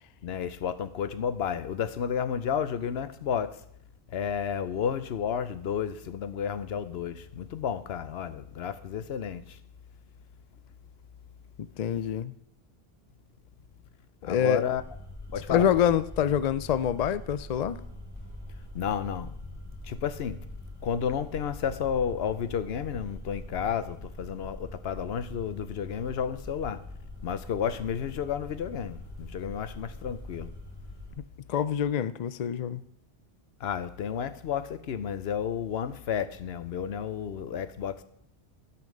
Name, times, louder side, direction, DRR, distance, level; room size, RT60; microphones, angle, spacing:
voice 1, 0.2-3.6 4.1-9.6 14.2-14.8 15.3-15.7 18.7-19.3 19.8-20.4 20.8-26.8 27.2-30.5 33.6-38.0, left 8 dB, 70° left, 0.9 m, -31 dB
voice 2, 11.8-12.3 14.2-14.6 15.5-17.8 31.5-32.8, left 9 dB, 55° left, 0.4 m, -26 dB
sound 1, 14.7-31.1, left 1 dB, 30° left, 3.7 m, -43 dB
12.5 x 5.7 x 6.5 m
omnidirectional pair, 1.1 m